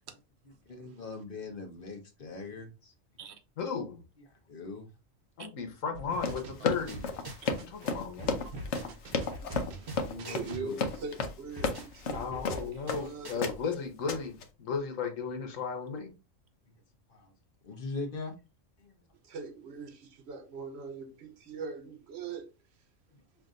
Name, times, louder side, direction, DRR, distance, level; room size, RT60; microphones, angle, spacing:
voice 1, 0.6-2.9 4.2-4.9 9.7-10.7 17.1-17.3 17.6-18.3 18.8-19.0 23.1-23.2, left 3 dB, 45° left, 1.1 m, -41 dB
voice 2, 3.6-4.0 5.4-7.1 7.6-8.5 12.1-16.1, left 5 dB, 85° left, 1.3 m, -35 dB
sound 1, 5.9-7.9 8.2-10.7, right 3 dB, 85° right, 1.1 m, -44 dB
Run, 6.1-13.1 13.4-13.7 14.1-14.4, left 4 dB, 65° left, 1.0 m, -33 dB
sound 2, 6.9-7.5 7.8-10.5 10.8-13.5, left 1 dB, 25° right, 0.6 m, -46 dB
voice 3, 10.3-13.4 19.2-22.5, right 4 dB, 60° right, 0.9 m, -42 dB
5.8 x 2.6 x 2.5 m
omnidirectional pair, 1.3 m